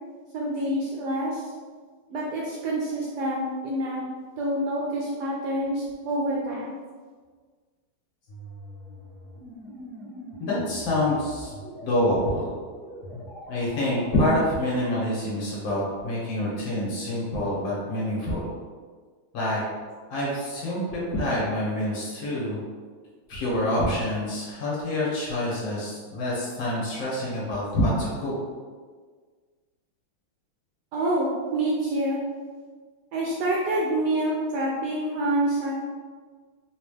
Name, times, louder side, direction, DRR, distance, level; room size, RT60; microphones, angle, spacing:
voice 1, 0.3-1.4 2.1-4.0 4.4-6.7 30.9-32.2 33.1-35.7, right 1 dB, 75° right, -4 dB, 1.0 m, -27 dB
sound 1, 8.3-13.8, equal, 45° left, 1.3 m, -42 dB
voice 2, 10.4-11.5 11.8-12.5 13.5-18.5 19.3-19.6 20.1-22.6 23.3-28.3, left 1 dB, 70° left, -6 dB, 1.8 m, -26 dB
4.1 x 2.3 x 3.1 m, 1.5 s
omnidirectional pair, 2.2 m